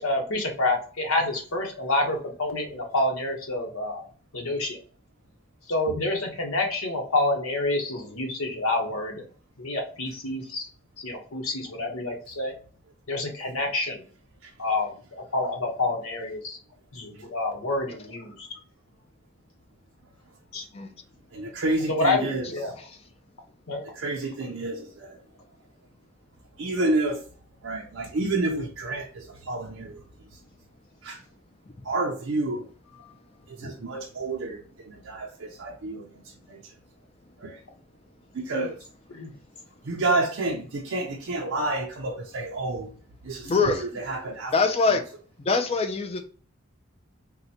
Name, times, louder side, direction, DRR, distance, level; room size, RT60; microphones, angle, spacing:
voice 1, 0.0-4.0 4.3-4.8 5.7-9.2 9.6-10.6 11.0-12.5 13.1-14.0 14.6-16.6 16.9-18.5 20.5-20.6 21.9-22.7 23.7-23.8 39.1-39.3, left 2 dB, 90° left, 1.0 m, -28 dB
voice 2, 21.3-22.8 23.8-25.2 26.6-27.2 27.6-30.0 31.0-31.2 31.8-32.7 33.5-36.1 36.5-36.7 37.4-37.6 38.3-38.9 39.8-42.9 43.2-44.6 44.9-45.0, right 2 dB, 70° right, 0.5 m, -29 dB
voice 3, 22.5-23.0 31.7-31.8 33.6-33.7 43.4-43.8 44.5-45.0 45.4-46.2, left 4 dB, 30° left, 0.4 m, -24 dB
3.8 x 2.2 x 2.8 m
head